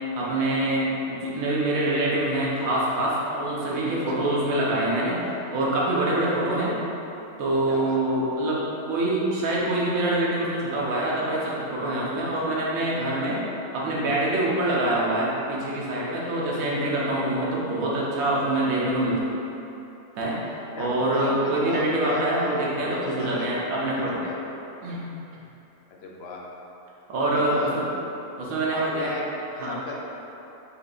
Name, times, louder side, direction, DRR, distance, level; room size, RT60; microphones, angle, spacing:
voice 1, 0.1-5.2 5.5-6.8 7.4-13.4 13.7-19.2 20.2-20.4 20.8-24.2 24.8-25.0 27.1-27.8 28.4-29.1 29.6-29.8, right 1 dB, 70° right, -5 dB, 1.2 m, -25 dB
voice 2, 7.7-8.0 20.7-23.6 23.9-24.5 26.0-26.4 27.3-27.7 28.7-29.3 29.6-29.9, left 3 dB, 75° left, -2 dB, 0.6 m, -36 dB
5.2 x 3.7 x 2.3 m, 3.0 s
omnidirectional pair, 1.6 m